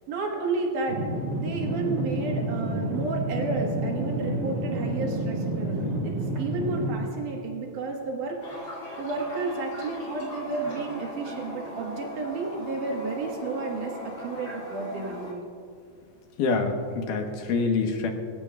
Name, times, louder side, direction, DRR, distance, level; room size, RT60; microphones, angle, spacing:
voice 1, 0.1-1.0 1.4-8.4 9.0-15.5, right 3 dB, 80° right, 0 dB, 3.0 m, -31 dB
sound 1, 0.9-6.9, right 1 dB, 40° right, 2.3 m, -29 dB
Toilet flush, 8.4-15.3, left 1 dB, 50° left, 3.5 m, -39 dB
voice 2, 16.4-18.1, left 4 dB, 85° left, 3 dB, 2.8 m, -26 dB
25.0 x 14.5 x 2.4 m, 2.3 s
omnidirectional pair, 3.6 m